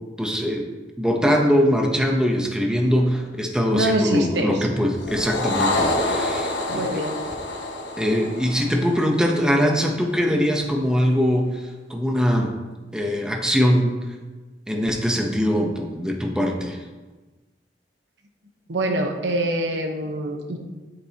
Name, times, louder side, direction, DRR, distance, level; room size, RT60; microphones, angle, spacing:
voice 1, 0.2-0.7 1.0-7.0 8.0-12.6 12.9-14.0 14.7-16.8, equal, 5° right, 1 dB, 0.8 m, -22 dB
voice 2, 3.7-4.5 6.7-7.2 18.7-20.6, right 1 dB, 80° right, 3 dB, 1.1 m, -25 dB
sound 1, 5.0-9.6, left 2 dB, 80° left, 1.1 m, -27 dB
8.7 x 8.4 x 2.9 m, 1.2 s
head